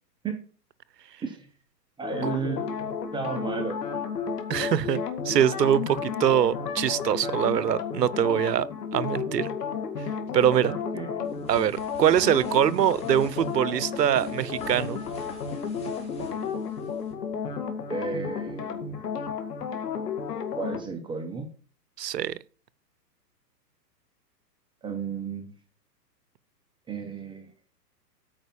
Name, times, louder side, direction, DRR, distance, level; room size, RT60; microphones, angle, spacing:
sound 1, 2.0-20.8, left 6 dB, 70° left, 2.3 m, -32 dB
voice 1, 2.0-2.7 3.1-3.8 10.7-11.4 17.9-19.1 20.5-21.5 24.8-25.5 26.9-27.5, right 5 dB, 10° right, 0.9 m, -33 dB
voice 2, 4.5-8.7 8.9-9.5 10.3-10.7 11.5-15.0 22.0-22.4, right 10 dB, 75° right, 0.8 m, -23 dB
sound 2, 11.2-17.1, left 1 dB, 10° left, 2.8 m, -46 dB
9.1 x 5.3 x 7.0 m
hypercardioid pair, 125°, 49 cm